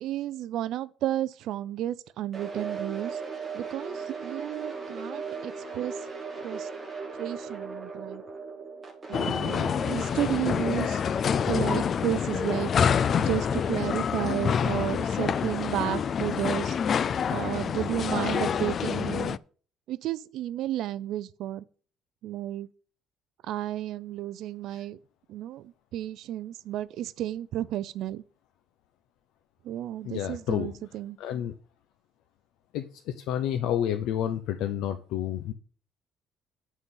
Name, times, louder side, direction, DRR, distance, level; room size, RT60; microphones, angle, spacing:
voice 1, 0.0-3.2 3.5-6.0 6.4-6.7 7.2-8.2 9.1-11.0 11.5-12.7 13.2-16.8 17.3-19.4 19.9-21.6 22.2-22.7 23.4-25.0 25.3-28.2 29.6-31.2, right 12 dB, 65° right, 0.5 m, -32 dB
sound 1, 2.3-12.4, right 5 dB, 15° right, 2.5 m, -38 dB
sound 2, 9.1-19.4, left 7 dB, 35° left, 0.3 m, -27 dB
voice 2, 30.0-30.7 31.2-31.5 32.7-35.5, left 10 dB, 85° left, 0.8 m, -30 dB
9.6 x 6.4 x 5.4 m
cardioid pair, 160°, 0 cm